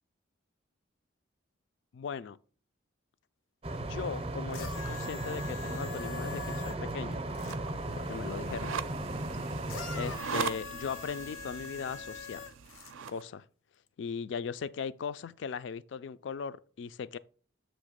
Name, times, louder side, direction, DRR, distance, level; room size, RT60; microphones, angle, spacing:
voice 1, 1.9-2.4 3.8-7.2 7.9-8.7 9.9-12.5 13.1-13.5 14.0-17.2, left 6 dB, 65° left, 0.3 m, -38 dB
sound 1, 3.6-10.2, right 1 dB, 30° right, 0.5 m, -36 dB
sound 2, 4.5-7.6 9.7-12.9 13.9-14.0, left 6 dB, 85° left, 0.7 m, -44 dB
sound 3, 7.4-13.2, right 6 dB, 80° right, 0.5 m, -40 dB
7.4 x 3.0 x 5.0 m
head